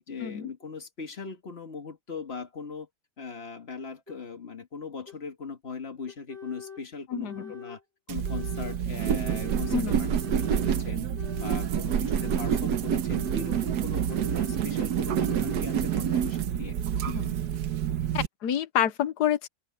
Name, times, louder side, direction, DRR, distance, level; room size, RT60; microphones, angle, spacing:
voice 1, 0.0-2.9 3.2-7.8 8.1-10.1 10.4-11.1 11.4-16.8, left 5 dB, 40° left, 2.0 m, -40 dB
sound 1, 4.1-4.2 5.1-5.2 6.1-6.8 7.3-7.8 8.2-8.8 9.2-9.8 10.2-10.7 11.2-11.7 12.1-12.7 13.1-13.6 14.1-14.6 15.1-15.6, left 6 dB, 25° right, 2.1 m, -43 dB
voice 2, 7.1-7.5 9.7-10.2 17.1-17.4 18.1-19.5, left 10 dB, 85° left, 1.5 m, -28 dB
sound 2, 8.1-18.3, right 9 dB, 90° right, 1.5 m, -28 dB
open air
omnidirectional pair, 1.7 m